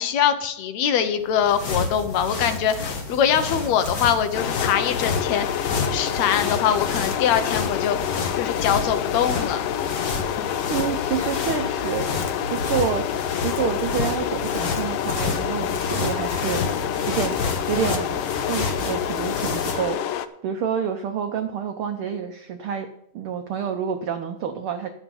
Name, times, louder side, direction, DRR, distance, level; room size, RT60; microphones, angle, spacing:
voice 1, 0.0-5.5 5.9-8.0 8.4-9.6, left 8 dB, 75° left, 9 dB, 2.0 m, -23 dB
sound 1, 1.2-20.0, left 3 dB, 50° left, 1.1 m, -30 dB
sound 2, 4.3-20.3, left 11 dB, 90° left, 1.3 m, -28 dB
voice 2, 10.7-17.4 17.7-18.2 18.5-20.0 20.4-22.9 23.1-24.9, right 7 dB, 80° right, 6 dB, 1.2 m, -28 dB
11.5 x 8.3 x 5.4 m, 0.75 s
omnidirectional pair, 3.4 m